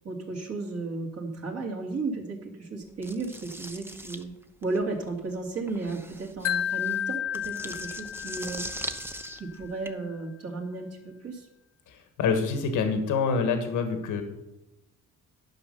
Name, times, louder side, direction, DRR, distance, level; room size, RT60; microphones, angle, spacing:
voice 1, 0.0-4.3 4.6-8.7 9.3-11.5, right 3 dB, 55° right, 0 dB, 2.6 m, -34 dB
sound 1, 3.0-9.9, right 1 dB, 10° right, 0.8 m, -40 dB
Wind chime, 6.4-9.6, left 10 dB, 55° left, 0.4 m, -32 dB
voice 2, 11.9-14.2, left 5 dB, 85° left, 6 dB, 1.4 m, -26 dB
11.0 x 5.6 x 6.7 m, 0.97 s
cardioid pair, 90°, 30 cm